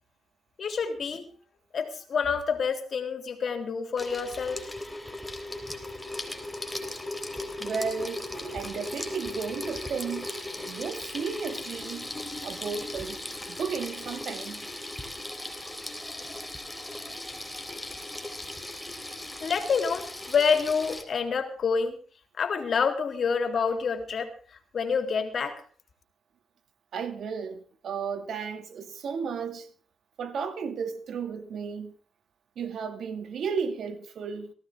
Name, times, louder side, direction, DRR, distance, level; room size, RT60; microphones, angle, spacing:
voice 1, 0.6-1.3 1.7-4.7 19.4-22.0 22.4-25.6, left 5 dB, 55° left, 3.4 m, -28 dB
Water tap faucet / Sink (filling or washing), 4.0-21.0, left 1 dB, 5° left, 3.7 m, -37 dB
voice 2, 7.6-8.3 8.5-10.4 10.6-12.1 12.4-13.2 13.5-14.7 26.9-29.7 30.2-31.9 32.6-34.5, right 6 dB, 70° right, 2.3 m, -34 dB
18.5 x 16.0 x 3.7 m
cardioid pair, 75°, 0 cm